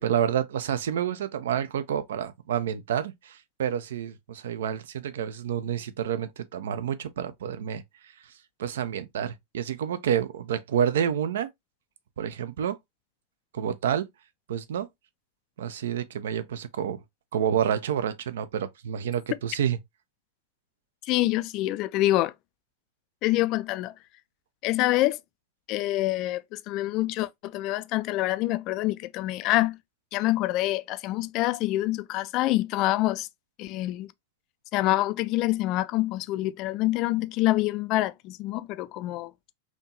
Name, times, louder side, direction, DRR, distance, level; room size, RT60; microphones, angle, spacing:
voice 1, 0.0-7.8 8.6-11.5 12.2-12.8 13.5-14.1 14.5-14.9 15.6-17.0 17.3-19.8, right 9 dB, 60° right, 0.5 m, -29 dB
voice 2, 21.0-22.3 23.2-23.9 24.6-25.2 25.7-29.8 30.1-33.3 33.6-34.1 34.7-39.3, left 17 dB, 40° left, 0.3 m, -26 dB
4.2 x 2.9 x 2.9 m
figure-of-eight pair, 90°, 0 cm